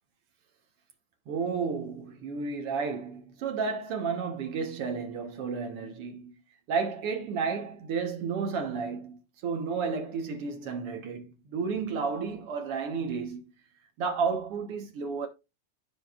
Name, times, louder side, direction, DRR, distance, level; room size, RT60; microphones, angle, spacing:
voice 1, 1.3-6.3 6.7-13.4 14.0-15.3, right 5 dB, 60° right, 1.6 m, -32 dB
13.5 x 4.9 x 2.4 m
omnidirectional pair, 3.9 m